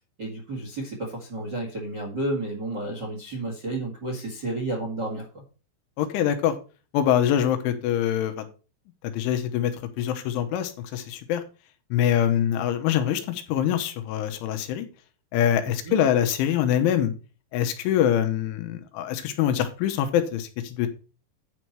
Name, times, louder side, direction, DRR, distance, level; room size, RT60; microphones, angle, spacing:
voice 1, 0.2-5.4 15.9-16.0, right 2 dB, 50° right, 0 dB, 1.2 m, -31 dB
voice 2, 6.0-6.6 6.9-8.5 9.0-11.4 11.9-14.9 15.3-17.1 17.5-20.9, left 10 dB, 90° left, 8 dB, 3.5 m, -24 dB
10.5 x 4.7 x 5.7 m, 0.35 s
omnidirectional pair, 5.4 m